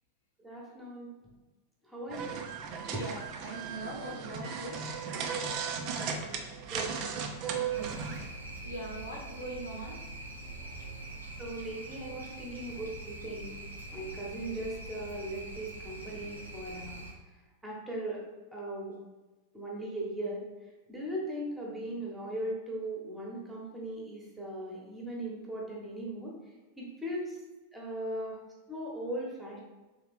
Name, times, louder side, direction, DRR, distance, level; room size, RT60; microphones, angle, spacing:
voice 1, 0.4-1.1 1.9-2.4 2.9-3.0 5.8-6.4 6.7-7.9 11.4-13.5 13.9-17.0 17.6-18.2 18.5-18.9 19.5-20.4 20.9-26.3 26.8-27.4 27.7-28.4 28.7-29.6, right 1 dB, 10° right, -3 dB, 1.1 m, -39 dB
sound 1, 2.1-8.3, right 6 dB, 40° right, 0.5 m, -36 dB
voice 2, 2.9-4.8 8.6-10.0, right 1 dB, 75° left, -1 dB, 1.0 m, -41 dB
sound 2, 7.7-17.1, right 2 dB, 85° right, 0.6 m, -44 dB
3.5 x 3.3 x 3.5 m, 1.2 s
figure-of-eight pair, 90°, 0 cm